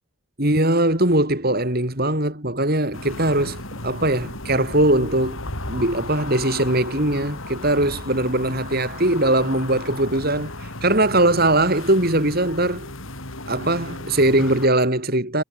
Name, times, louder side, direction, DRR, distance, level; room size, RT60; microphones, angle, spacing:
voice 1, 0.4-12.9 13.5-15.4, right 1 dB, 45° right, 4.7 m, -21 dB
sound 1, 2.9-14.7, left 2 dB, 70° left, 6.0 m, -35 dB
head